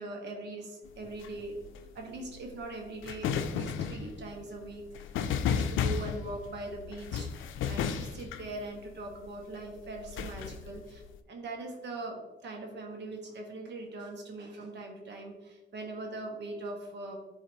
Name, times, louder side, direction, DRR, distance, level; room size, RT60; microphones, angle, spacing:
voice 1, 0.0-5.1 5.4-11.0 11.3-17.2, right 2 dB, 60° right, 1 dB, 1.6 m, -41 dB
sound 1, 0.9-9.2 9.9-11.2, left 7 dB, 80° left, 0.5 m, -34 dB
11.5 x 4.0 x 3.1 m, 1.1 s
cardioid pair, 90°, 20 cm